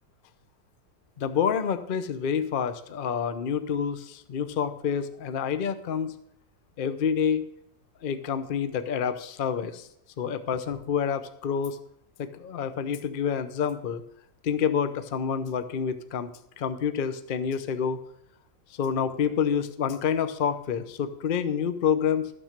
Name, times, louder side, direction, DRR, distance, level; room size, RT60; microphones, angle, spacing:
voice 1, 1.2-6.1 6.8-7.4 8.0-9.9 10.2-11.8 12.2-14.0 14.4-16.3 16.6-18.0 18.8-22.3, left 7 dB, 55° left, 11 dB, 0.6 m, -28 dB
13.0 x 6.1 x 6.6 m, 0.72 s
omnidirectional pair, 1.9 m